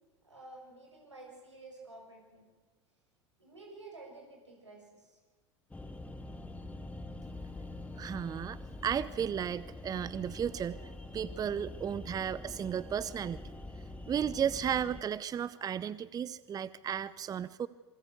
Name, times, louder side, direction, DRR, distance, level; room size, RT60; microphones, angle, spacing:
voice 1, 0.2-2.5 3.4-5.2 7.0-7.3, right 2 dB, 90° right, 0 dB, 7.0 m, -51 dB
sound 1, 5.7-15.0, left 2 dB, 10° left, 1.9 m, -45 dB
voice 2, 8.0-13.6 14.1-17.7, right 8 dB, 25° right, 17 dB, 0.7 m, -34 dB
27.0 x 24.0 x 8.1 m, 1.3 s
figure-of-eight pair, 80°, 15 cm